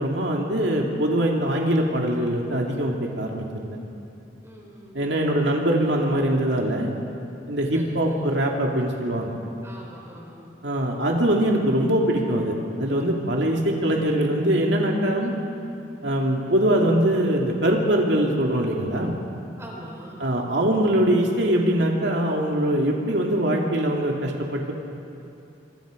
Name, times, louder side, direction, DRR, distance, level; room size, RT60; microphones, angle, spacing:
voice 1, 0.0-3.8 4.9-6.9 7.5-9.3 10.6-15.3 16.0-19.2 20.2-24.7, right 1 dB, 70° right, -1 dB, 2.6 m, -22 dB
voice 2, 4.4-5.3 7.7-8.3 9.6-10.5 13.3-13.6 19.6-20.2, right 1 dB, 15° right, -2 dB, 4.4 m, -43 dB
26.5 x 26.0 x 5.2 m, 2.7 s
head